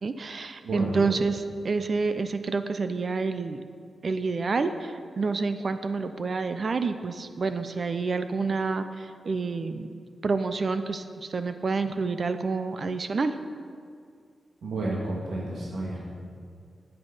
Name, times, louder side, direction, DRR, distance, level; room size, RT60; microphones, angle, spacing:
voice 1, 0.0-3.6 4.0-13.4, right 4 dB, 45° right, 9 dB, 0.5 m, -28 dB
voice 2, 0.6-1.0 14.6-16.1, right 2 dB, 85° right, -4 dB, 1.9 m, -31 dB
12.0 x 9.1 x 5.4 m, 2.1 s
wide cardioid pair, 155°, 0 cm